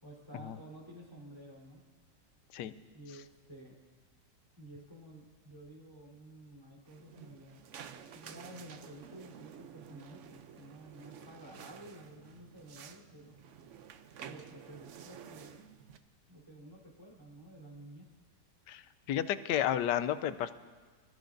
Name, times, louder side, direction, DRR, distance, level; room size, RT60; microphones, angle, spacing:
voice 1, 0.0-1.8 2.9-3.7 4.6-7.6 8.1-13.4 14.2-15.7 16.3-18.1, right 1 dB, 15° right, -4 dB, 3.6 m, -52 dB
sound 1, 6.9-16.0, right 8 dB, 65° right, 0.8 m, -51 dB
voice 2, 19.1-20.5, left 10 dB, 80° left, 12 dB, 1.2 m, -31 dB
26.0 x 14.0 x 2.6 m, 1.5 s
omnidirectional pair, 1.8 m